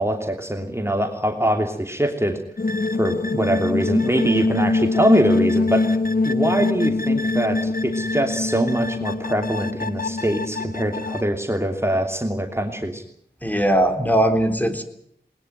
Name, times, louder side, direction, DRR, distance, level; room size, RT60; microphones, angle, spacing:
voice 1, 0.0-2.4 2.9-6.0 6.2-13.0, right 1 dB, 15° right, 3 dB, 3.0 m, -23 dB
sound 1, 2.6-11.3, left 3 dB, 55° left, 1.0 m, -23 dB
voice 2, 13.4-14.8, right 1 dB, 10° left, 6 dB, 3.9 m, -19 dB
21.0 x 20.5 x 9.2 m, 0.67 s
wide cardioid pair, 45°, 17 cm